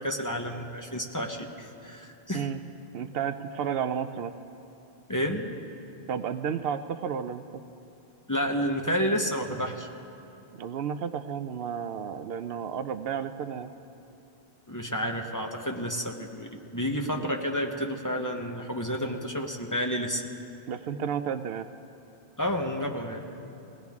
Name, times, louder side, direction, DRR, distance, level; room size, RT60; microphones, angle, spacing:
voice 1, 0.0-2.5 5.1-5.6 8.3-9.9 14.7-20.2 22.4-23.3, equal, 20° left, 2 dB, 0.9 m, -30 dB
voice 2, 2.9-4.3 6.1-7.4 10.5-13.7 17.1-17.3 20.7-21.7, right 7 dB, 75° right, 9 dB, 0.8 m, -32 dB
21.0 x 17.0 x 3.6 m, 2.8 s
omnidirectional pair, 1.0 m